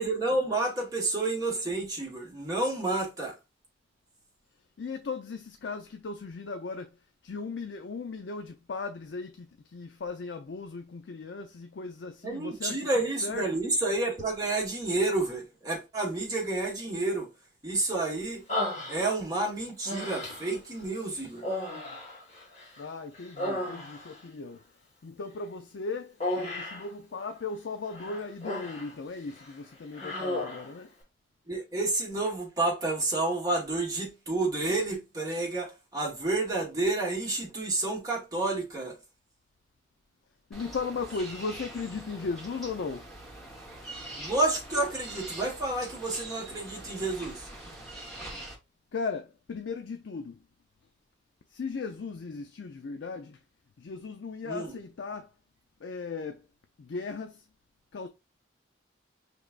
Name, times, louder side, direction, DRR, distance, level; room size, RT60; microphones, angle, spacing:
voice 1, 0.0-3.4 12.2-17.3 17.6-18.4 18.9-21.5 31.5-39.0 44.2-47.5 54.4-54.7, right 2 dB, 20° right, 1.3 m, -30 dB
voice 2, 4.8-7.0 7.2-12.9 13.2-13.4 22.8-24.6 25.0-30.9 40.5-43.1 48.9-50.4 51.5-53.4 53.8-55.3 55.8-56.5 56.8-57.5 57.9-58.1, left 4 dB, 75° left, 0.4 m, -37 dB
Human voice, 18.5-19.4 19.8-20.6 21.4-22.8 23.1-24.2 26.2-26.9 27.9-28.9 29.3-29.5 29.9-30.7, left 1 dB, 40° left, 2.3 m, -34 dB
sound 1, 40.5-48.5, right 1 dB, ahead, 1.1 m, -44 dB
5.0 x 3.4 x 2.4 m
head